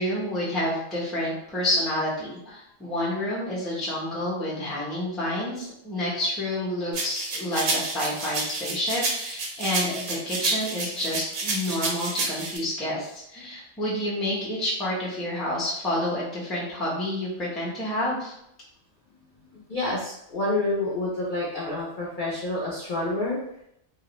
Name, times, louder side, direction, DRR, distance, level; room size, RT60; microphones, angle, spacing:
voice 1, 0.0-18.3, left 1 dB, ahead, -7 dB, 0.4 m, -29 dB
sound 1, 6.9-12.6, right 3 dB, 80° right, 1.0 m, -30 dB
voice 2, 19.7-23.4, left 2 dB, 60° left, -6 dB, 0.5 m, -28 dB
2.4 x 2.0 x 2.9 m, 0.77 s
omnidirectional pair, 1.4 m